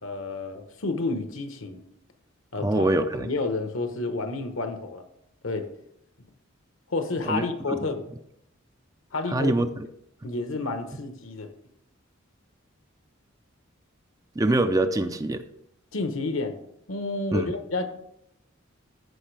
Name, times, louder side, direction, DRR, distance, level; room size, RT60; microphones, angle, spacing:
voice 1, 0.0-1.8 2.5-2.9 3.2-5.0 5.4-5.7 6.9-8.0 9.1-9.5 10.2-11.5 15.9-16.6 16.9-17.9, left 3 dB, 70° left, 7 dB, 1.1 m, -30 dB
voice 2, 2.6-3.3 7.2-7.9 9.3-9.7 14.4-15.5 17.3-17.5, right 2 dB, 15° right, 9 dB, 0.4 m, -24 dB
14.5 x 5.5 x 3.3 m, 0.76 s
head